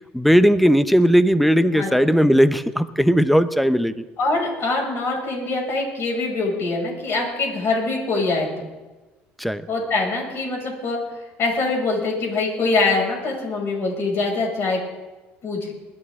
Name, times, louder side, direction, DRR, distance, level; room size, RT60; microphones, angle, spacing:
voice 1, 0.1-4.0 9.4-9.6, equal, ahead, 12 dB, 0.8 m, -17 dB
voice 2, 4.2-8.7 9.7-11.0 11.4-14.8 15.4-15.7, left 3 dB, 50° left, -1 dB, 6.3 m, -23 dB
21.0 x 13.0 x 3.7 m, 1.1 s
supercardioid pair, 85°, 5 cm